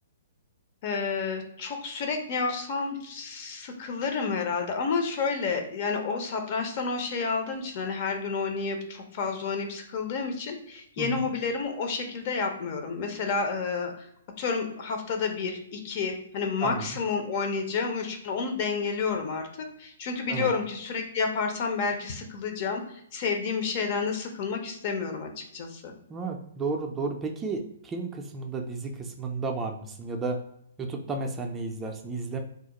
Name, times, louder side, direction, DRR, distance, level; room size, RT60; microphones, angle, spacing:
voice 1, 0.8-14.1 14.4-25.9, left 5 dB, 45° left, 4 dB, 0.5 m, -30 dB
voice 2, 11.0-11.3 16.6-16.9 20.3-20.5 26.1-30.4 30.8-32.4, right 3 dB, 15° right, 3 dB, 0.3 m, -32 dB
2.3 x 2.0 x 2.9 m, 0.74 s
hypercardioid pair, 130°, 0 cm